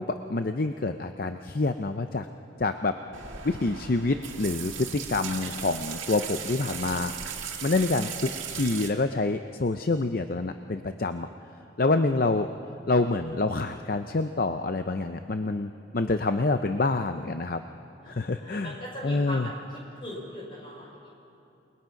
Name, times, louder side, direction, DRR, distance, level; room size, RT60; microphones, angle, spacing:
voice 1, 0.0-2.3 2.6-3.0 3.4-11.3 11.8-12.5 12.9-17.6 18.1-18.8 19.0-19.5, left 3 dB, 50° left, 8 dB, 0.6 m, -27 dB
sound 1, 3.1-8.9, right 7 dB, 90° right, 2.0 m, -37 dB
voice 2, 18.0-19.5 20.0-21.1, equal, 25° left, -3 dB, 5.8 m, -40 dB
28.5 x 20.5 x 5.8 m, 2.8 s
head